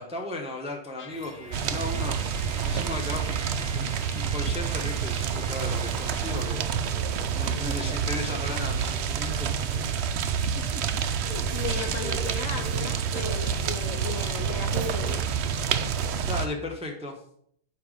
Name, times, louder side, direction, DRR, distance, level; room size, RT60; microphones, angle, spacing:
voice 1, 0.0-3.4 3.7-6.6 7.3-9.9 11.7-12.3 16.3-17.2, left 2 dB, 5° right, 2 dB, 0.6 m, -36 dB
Trumpet, 1.0-6.3, left 3 dB, 90° left, 1.6 m, -47 dB
sound 1, 1.1-16.4, right 6 dB, 60° right, 1.1 m, -45 dB
sound 2, 1.5-16.5, right 7 dB, 80° right, 0.5 m, -28 dB
voice 2, 7.5-7.9 10.2-10.3 10.6-15.3, left 4 dB, 65° left, 5 dB, 0.9 m, -36 dB
8.6 x 3.4 x 4.9 m, 0.65 s
omnidirectional pair, 1.7 m